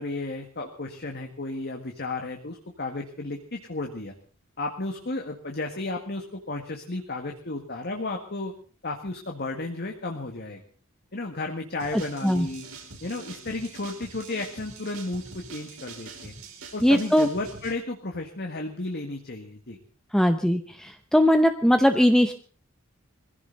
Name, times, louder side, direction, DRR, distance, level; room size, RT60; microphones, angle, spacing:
voice 1, 0.0-4.1 4.6-8.5 8.8-10.6 11.1-12.7 13.0-16.3 16.7-19.8, left 2 dB, 50° left, 3 dB, 1.8 m, -33 dB
sound 1, 11.8-17.7, right 4 dB, 85° right, 4.7 m, -44 dB
voice 2, 11.9-12.5 16.8-17.3 20.1-22.3, equal, 5° left, 7 dB, 0.8 m, -20 dB
22.0 x 16.0 x 4.0 m, 0.39 s
head